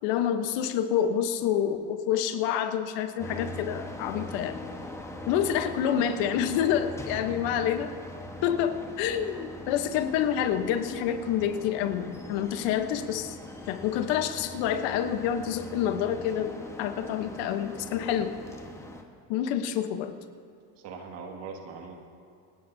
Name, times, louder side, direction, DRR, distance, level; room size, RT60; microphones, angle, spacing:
voice 1, 0.0-4.6 5.3-7.9 8.4-13.4 13.7-18.3 19.3-20.1, left 9 dB, 70° left, 8 dB, 1.1 m, -28 dB
sound 1, 3.2-19.0, left 1 dB, 5° left, 1.2 m, -41 dB
voice 2, 7.1-7.5 8.4-8.5 20.8-22.0, right 5 dB, 65° right, 2 dB, 2.1 m, -42 dB
28.0 x 10.0 x 2.8 m, 2.4 s
supercardioid pair, 100°, 45 cm